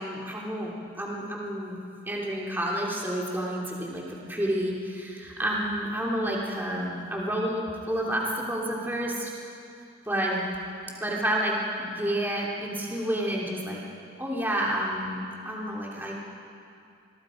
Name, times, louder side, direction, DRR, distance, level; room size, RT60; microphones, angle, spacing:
voice 1, 0.0-1.8 2.0-9.3 10.1-10.4 10.9-13.8 14.2-16.2, right 1 dB, 10° right, -4 dB, 2.9 m, -30 dB
28.0 x 21.0 x 5.1 m, 2.5 s
head